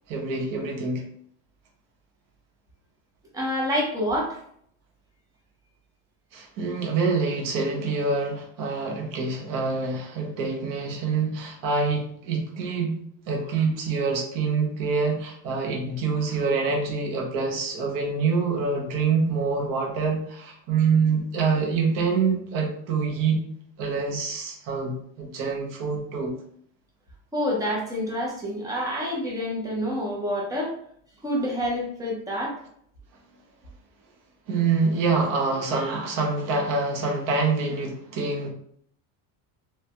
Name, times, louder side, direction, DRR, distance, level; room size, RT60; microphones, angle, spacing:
voice 1, 0.1-1.0 6.3-12.9 13.3-23.4 23.8-26.3 34.5-38.5, right 4 dB, 50° right, 1 dB, 0.8 m, -26 dB
voice 2, 3.3-4.4 27.3-30.8 31.2-32.6, equal, 10° right, -2 dB, 0.5 m, -27 dB
3.1 x 2.2 x 2.8 m, 0.65 s
cardioid pair, 165°, 43 cm